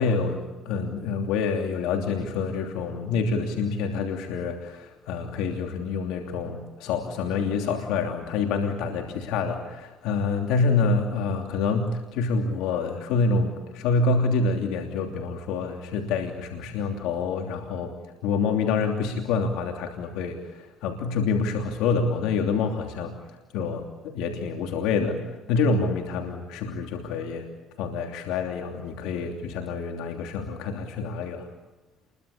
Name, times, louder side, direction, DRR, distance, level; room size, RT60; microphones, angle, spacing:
voice 1, 0.0-17.9 18.2-23.1 23.5-27.5 27.8-31.5, left 4 dB, 85° left, 4 dB, 2.9 m, -27 dB
28.5 x 22.5 x 8.6 m, 1.1 s
supercardioid pair, 85°, 0 cm